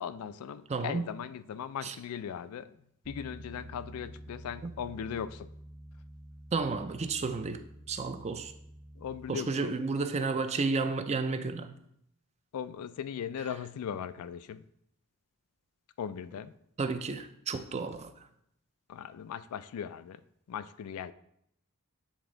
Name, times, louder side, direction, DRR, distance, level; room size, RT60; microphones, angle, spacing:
voice 1, 0.0-5.5 9.0-9.7 12.5-14.6 16.0-16.5 18.9-20.2 20.5-21.1, left 8 dB, 75° left, 14 dB, 0.3 m, -39 dB
voice 2, 0.7-1.1 1.8-2.0 4.6-4.7 6.5-7.6 7.9-8.5 9.3-11.7 16.8-18.1, right 4 dB, 30° right, 9 dB, 0.4 m, -32 dB
Bass guitar, 3.0-9.3, equal, 50° right, 1.6 m, -49 dB
8.0 x 3.4 x 3.8 m, 0.75 s
head